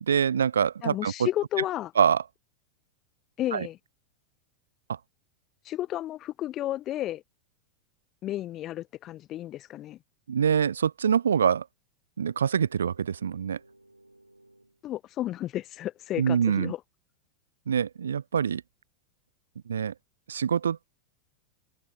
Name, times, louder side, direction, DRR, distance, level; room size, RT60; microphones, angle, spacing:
voice 1, 0.0-1.3 2.0-2.2 3.5-3.7 4.9-5.0 10.3-11.7 12.2-13.6 16.2-16.7 17.7-18.6 19.7-19.9 20.3-20.8, right 7 dB, 70° right, 0.6 m, -25 dB
voice 2, 0.8-1.9 3.4-3.8 5.6-7.2 8.2-10.0 14.8-16.8, left 13 dB, 35° left, 0.5 m, -32 dB
sound 1, 12.2-14.9, right 1 dB, 85° right, 4.4 m, -58 dB
open air
figure-of-eight pair, 90°, 0 cm